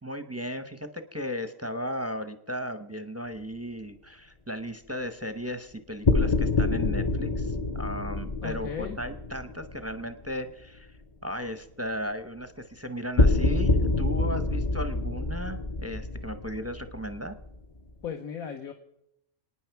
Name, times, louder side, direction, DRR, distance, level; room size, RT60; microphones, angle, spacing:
voice 1, 0.0-17.3, equal, 15° right, 9 dB, 0.5 m, -36 dB
sound 1, 6.0-10.3 13.2-17.8, left 2 dB, 40° left, 0.5 m, -26 dB
voice 2, 8.4-9.0 18.0-18.7, left 7 dB, 80° left, 4 dB, 1.5 m, -36 dB
27.5 x 9.7 x 4.6 m, 0.82 s
omnidirectional pair, 1.5 m